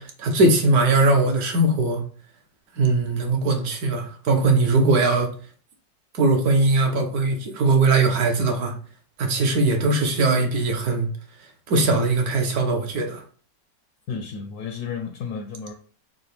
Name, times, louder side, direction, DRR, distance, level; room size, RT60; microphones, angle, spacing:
voice 1, 0.0-2.0 2.8-5.3 6.1-8.7 9.2-11.1 11.7-13.2, right 2 dB, 65° right, 1.2 m, -20 dB
voice 2, 14.1-15.7, left 6 dB, 70° left, 1.0 m, -32 dB
5.6 x 2.2 x 3.3 m
omnidirectional pair, 1.9 m